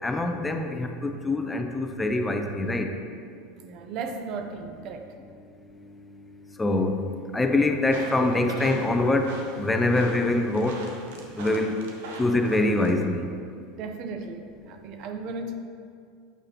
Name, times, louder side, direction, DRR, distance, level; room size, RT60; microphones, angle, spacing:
voice 1, 0.0-2.9 6.6-7.0 7.3-10.8 11.3-11.8 12.2-13.3, left 2 dB, 15° left, 5 dB, 0.5 m, -24 dB
voice 2, 3.6-5.1 13.8-15.5, right 4 dB, 55° right, 6 dB, 0.5 m, -35 dB
sound 1, 7.8-12.9, right 2 dB, 80° right, 0.9 m, -42 dB
7.8 x 4.8 x 2.9 m, 2.3 s
hypercardioid pair, 100°, 0 cm